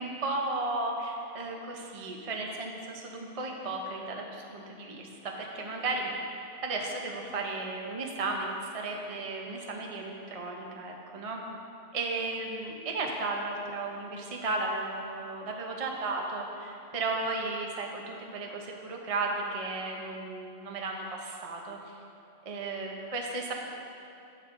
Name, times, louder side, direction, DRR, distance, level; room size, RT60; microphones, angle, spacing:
voice 1, 0.0-6.1 6.6-8.5 8.7-11.4 11.9-21.9 22.4-23.5, right 3 dB, 35° right, 0 dB, 0.7 m, -34 dB
12.0 x 9.6 x 2.6 m, 2.7 s
omnidirectional pair, 1.3 m